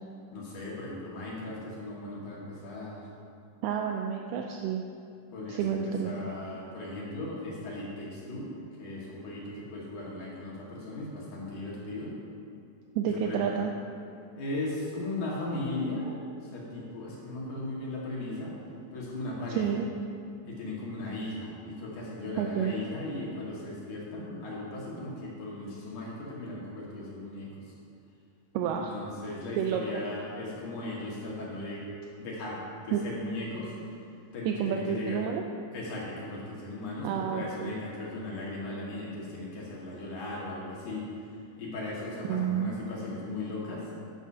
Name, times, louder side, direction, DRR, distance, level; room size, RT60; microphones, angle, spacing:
voice 1, 0.3-3.1 5.3-8.5 8.8-12.1 13.0-13.5 14.4-16.1 16.4-18.5 18.9-19.7 20.4-27.6 28.6-31.8 32.2-33.7 34.3-35.3 35.7-41.0 41.6-43.9, left 2 dB, 65° left, -5 dB, 3.1 m, -37 dB
voice 2, 3.6-4.8 5.5-6.1 13.0-13.7 19.6-19.9 22.4-22.8 28.5-28.9 29.6-30.0 32.9-33.0 34.5-35.4 37.0-37.7 42.3-42.7, right 8 dB, 80° right, 2 dB, 2.1 m, -30 dB
11.5 x 9.2 x 2.7 m, 2.5 s
omnidirectional pair, 3.9 m